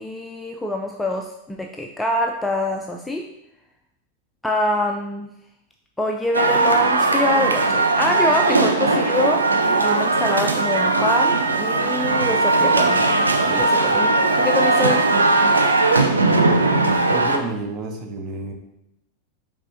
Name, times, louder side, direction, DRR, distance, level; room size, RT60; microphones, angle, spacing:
voice 1, 0.0-3.3 4.4-5.3 6.0-13.2 13.5-15.0, left 1 dB, 5° left, 2 dB, 0.3 m, -25 dB
sound 1, 6.3-17.4, right 3 dB, 75° right, 0.4 m, -18 dB
voice 2, 17.1-18.5, right 3 dB, 35° right, 3 dB, 0.8 m, -30 dB
5.3 x 3.4 x 2.6 m, 0.81 s
figure-of-eight pair, 90°, 0 cm